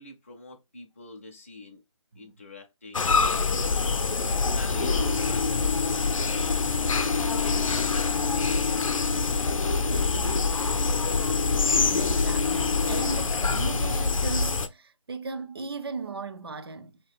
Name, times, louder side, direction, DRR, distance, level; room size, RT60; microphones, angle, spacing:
voice 1, 0.0-1.8 2.2-4.1 4.5-5.9 6.7-8.6 8.9-10.7, left 2 dB, 25° left, 0.4 m, -45 dB
sound 1, 2.9-14.7, left 4 dB, 80° left, 0.5 m, -25 dB
voice 2, 11.6-17.0, right 4 dB, 50° right, 0.4 m, -36 dB
2.8 x 2.2 x 3.4 m
figure-of-eight pair, 170°, 17 cm